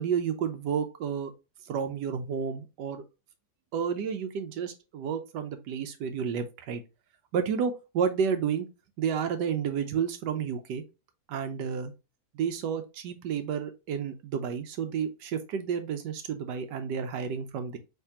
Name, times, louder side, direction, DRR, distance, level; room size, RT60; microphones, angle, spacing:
voice 1, 0.0-1.3 1.6-3.0 3.7-6.8 7.3-8.7 9.0-10.8 11.3-11.9 12.3-17.8, right 7 dB, 90° right, 1.3 m, -31 dB
5.7 x 3.2 x 2.8 m
omnidirectional pair, 1.8 m